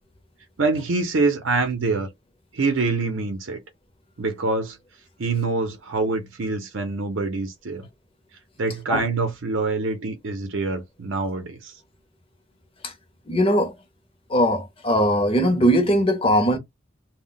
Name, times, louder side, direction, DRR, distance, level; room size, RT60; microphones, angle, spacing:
voice 1, 0.6-2.1 2.5-3.6 4.2-4.8 5.2-7.9 8.6-11.8, right 3 dB, 70° right, 0.6 m, -25 dB
voice 2, 13.3-13.7 14.3-16.6, equal, 30° left, 0.7 m, -20 dB
2.2 x 2.1 x 3.7 m
head